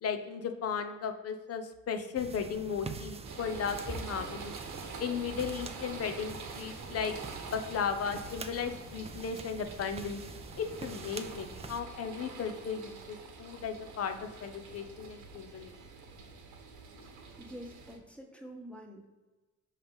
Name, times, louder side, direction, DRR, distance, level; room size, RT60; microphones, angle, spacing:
voice 1, 0.0-4.5 5.0-7.1 7.5-10.2 10.6-15.7, left 6 dB, 55° left, 7 dB, 0.8 m, -36 dB
sound 1, 2.2-11.8, right 3 dB, 20° right, 0.5 m, -45 dB
sound 2, 3.2-18.0, right 5 dB, 75° right, 1.2 m, -46 dB
voice 2, 17.4-19.1, equal, 5° left, 2 dB, 1.2 m, -47 dB
5.5 x 3.2 x 5.2 m, 1.2 s
cardioid pair, 90°, 30 cm